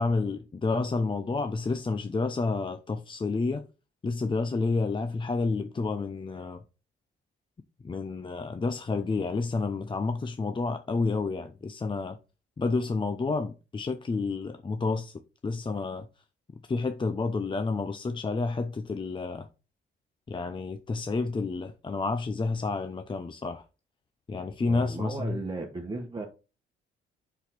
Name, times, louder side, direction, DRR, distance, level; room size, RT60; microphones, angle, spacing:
voice 1, 0.0-3.7 4.0-6.6 7.8-12.2 12.6-15.1 15.4-16.1 16.7-19.5 20.3-23.6 24.3-25.4, left 3 dB, 25° left, 0.7 m, -30 dB
voice 2, 24.7-26.3, right 3 dB, 25° right, 1.4 m, -35 dB
6.2 x 5.6 x 4.3 m
cardioid pair, 90°, 20 cm